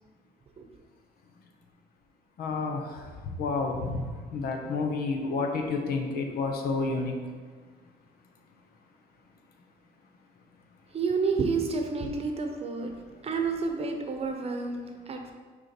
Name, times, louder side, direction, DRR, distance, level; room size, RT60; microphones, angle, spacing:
voice 1, 2.4-2.8 3.4-4.1 4.3-7.1, left 3 dB, 65° left, 3 dB, 1.0 m, -29 dB
voice 2, 10.9-12.9 13.2-15.3, right 4 dB, 35° right, 4 dB, 0.9 m, -30 dB
6.2 x 4.4 x 4.4 m, 1.5 s
cardioid pair, 110°, 17 cm